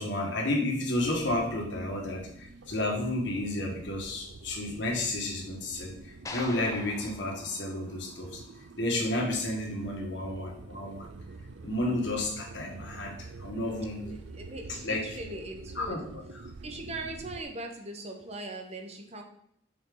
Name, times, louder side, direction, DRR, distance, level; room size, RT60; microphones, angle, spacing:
voice 1, 0.0-8.4 8.8-11.1 11.6-14.0 14.7-15.2 15.8-16.0, left 1 dB, 80° left, 0 dB, 1.6 m, -31 dB
sound 1, 0.9-17.4, right 3 dB, 85° right, 0.5 m, -47 dB
sound 2, 6.3-8.6, left 2 dB, 20° left, 0.6 m, -44 dB
voice 2, 14.0-16.0 16.6-19.2, right 2 dB, 35° right, 3 dB, 0.9 m, -40 dB
6.7 x 4.4 x 3.8 m, 0.73 s
head